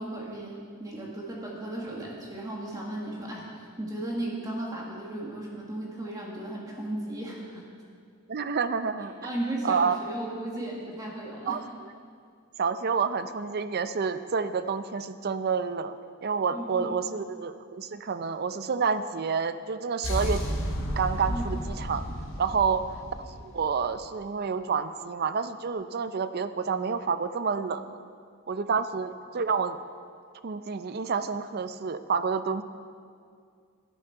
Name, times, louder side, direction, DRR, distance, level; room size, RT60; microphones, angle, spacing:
voice 1, 0.0-7.7 9.0-11.6 16.5-17.2 21.2-21.4, right 1 dB, 15° right, -3 dB, 1.6 m, -36 dB
voice 2, 8.3-9.1 9.6-10.0 11.5-11.6 12.6-16.0 16.2-20.6 21.0-22.0 22.4-22.8 23.4-28.0 28.5-29.8 30.4-32.6, right 5 dB, 45° right, 11 dB, 0.4 m, -29 dB
sound 1, 20.0-24.1, equal, 60° left, 2.4 m, -32 dB
13.0 x 10.0 x 4.5 m, 2.3 s
head